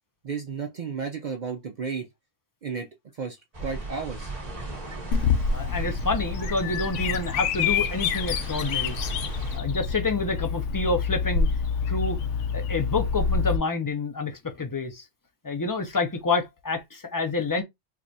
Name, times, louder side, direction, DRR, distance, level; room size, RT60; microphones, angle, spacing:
voice 1, 0.2-2.1 2.6-2.9 3.1-4.3, right 5 dB, 55° right, 0.5 m, -33 dB
sound 1, 3.5-9.6, right 2 dB, 35° right, 1.4 m, -37 dB
Bird vocalization bird call bird song, 5.1-13.6, left 6 dB, 75° left, 0.9 m, -27 dB
voice 2, 5.5-9.0 9.3-11.5 11.9-12.2 12.5-15.1 15.4-17.6, left 3 dB, 30° left, 0.3 m, -28 dB
4.7 x 2.4 x 2.6 m
omnidirectional pair, 1.2 m